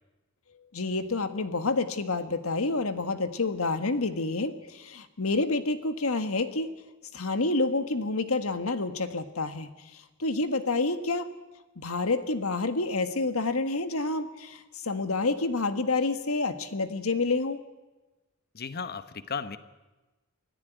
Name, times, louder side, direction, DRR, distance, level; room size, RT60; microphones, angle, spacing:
voice 1, 0.7-6.7 7.1-11.3 11.8-17.6, left 3 dB, 80° left, 10 dB, 1.6 m, -28 dB
voice 2, 18.5-19.6, left 5 dB, 50° left, 12 dB, 1.1 m, -35 dB
24.5 x 15.5 x 9.2 m, 1.1 s
head